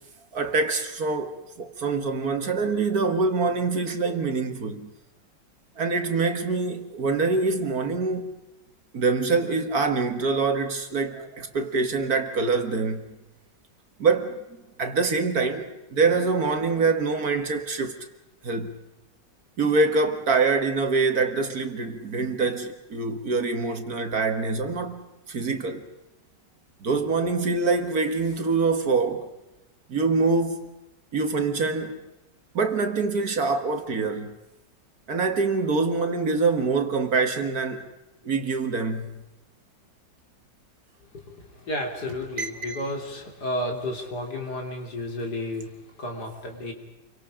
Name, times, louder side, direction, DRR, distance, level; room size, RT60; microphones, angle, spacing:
voice 1, 0.3-4.9 5.8-8.3 8.9-13.0 14.0-14.4 14.8-18.1 18.4-18.7 19.6-25.8 26.8-29.3 29.9-30.7 31.1-32.0 32.5-34.4 35.1-37.9 38.2-39.2 42.4-42.8, right 4 dB, 55° right, 2.1 m, -25 dB
voice 2, 41.1-46.7, left 1 dB, 60° left, 3.7 m, -32 dB
28.5 x 24.0 x 5.1 m
omnidirectional pair, 2.0 m